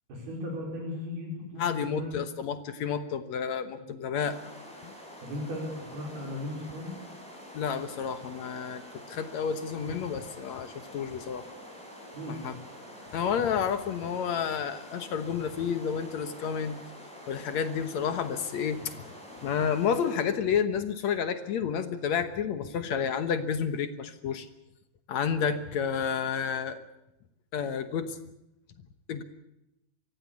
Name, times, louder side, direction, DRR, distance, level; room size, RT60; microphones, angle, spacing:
voice 1, 0.1-2.1 3.7-3.9 5.2-6.9 12.1-12.5, left 1 dB, 80° right, 0 dB, 6.9 m, -37 dB
voice 2, 1.6-4.4 4.8-4.9 7.5-8.8 9.1-11.4 12.3-12.6 13.1-16.8 17.3-18.9 19.4-24.5 25.1-26.8 27.5-28.2 29.1-29.2, left 7 dB, 65° left, 11 dB, 1.9 m, -30 dB
sound 1, 4.1-20.1, left 1 dB, ahead, 7.4 m, -47 dB
24.0 x 16.5 x 8.4 m, 0.88 s
omnidirectional pair, 4.4 m